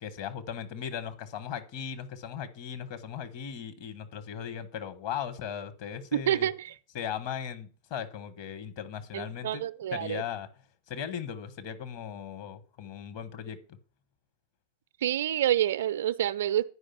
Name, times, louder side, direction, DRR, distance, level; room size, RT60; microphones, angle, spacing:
voice 1, 0.0-6.5 6.9-9.6 9.9-10.5 10.9-13.8, left 8 dB, 45° left, 1.2 m, -38 dB
voice 2, 6.1-6.7 9.1-10.2 15.0-16.6, right 11 dB, 60° right, 0.4 m, -28 dB
9.8 x 5.1 x 5.8 m
figure-of-eight pair, 90°, 0 cm